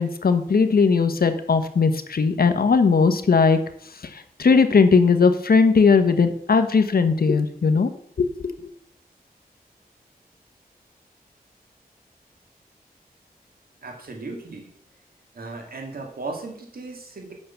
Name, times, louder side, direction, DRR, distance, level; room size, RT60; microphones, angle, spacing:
voice 1, 0.0-3.6 4.1-7.9 8.2-8.5, left 5 dB, 75° left, 8 dB, 1.2 m, -18 dB
voice 2, 13.8-14.7 15.3-17.3, right 3 dB, 70° right, 1 dB, 2.5 m, -36 dB
8.7 x 6.8 x 7.0 m, 0.67 s
cardioid pair, 55°, 16 cm